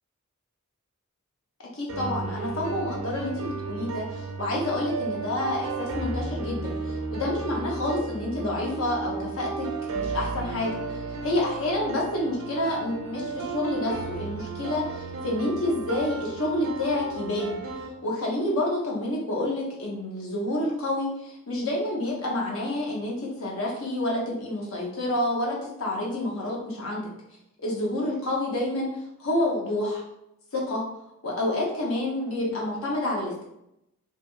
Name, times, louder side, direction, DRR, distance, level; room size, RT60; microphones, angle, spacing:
voice 1, 1.7-9.7 9.9-10.7 11.2-17.6 18.0-27.1 27.6-28.9 29.2-30.0 30.5-30.8 31.2-33.4, left 1 dB, 70° left, -2 dB, 0.8 m, -28 dB
sound 1, 1.9-17.9, right 4 dB, 70° right, 0.4 m, -34 dB
2.7 x 2.4 x 2.3 m, 0.81 s
head